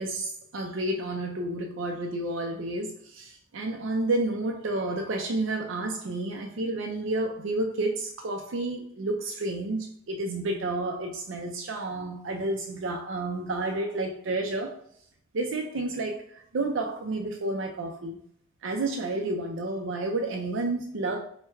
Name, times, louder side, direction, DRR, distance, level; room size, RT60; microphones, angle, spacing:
voice 1, 0.0-14.8 15.3-18.2 18.6-21.2, right 2 dB, 65° right, 2 dB, 0.4 m, -30 dB
4.4 x 2.2 x 3.4 m, 0.63 s
head